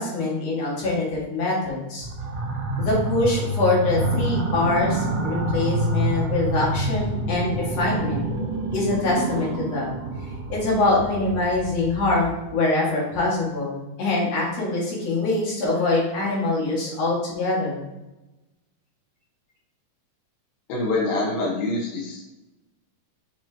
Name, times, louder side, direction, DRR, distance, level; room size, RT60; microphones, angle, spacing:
voice 1, 0.0-2.1 2.8-8.2 8.7-9.9 10.5-17.8, left 2 dB, 50° left, -5 dB, 2.9 m, -24 dB
sound 1, 2.0-12.5, right 1 dB, 65° right, 1.5 m, -27 dB
voice 2, 20.7-22.2, left 2 dB, 75° left, -3 dB, 3.0 m, -25 dB
6.8 x 6.0 x 2.9 m, 1.0 s
omnidirectional pair, 4.2 m